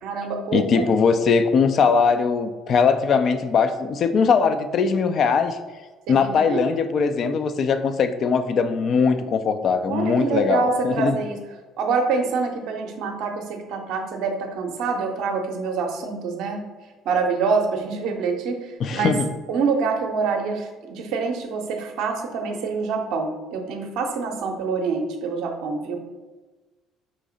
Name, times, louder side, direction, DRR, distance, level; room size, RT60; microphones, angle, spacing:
voice 1, 0.0-0.9 6.1-6.7 9.9-11.4 11.8-16.6 17.0-19.1 19.5-26.0, right 4 dB, 60° right, 3 dB, 0.6 m, -26 dB
voice 2, 0.5-5.6 6.1-11.2 18.8-19.3, left 5 dB, 50° left, 9 dB, 0.4 m, -20 dB
5.0 x 2.7 x 3.8 m, 1.2 s
figure-of-eight pair, 55°, 0 cm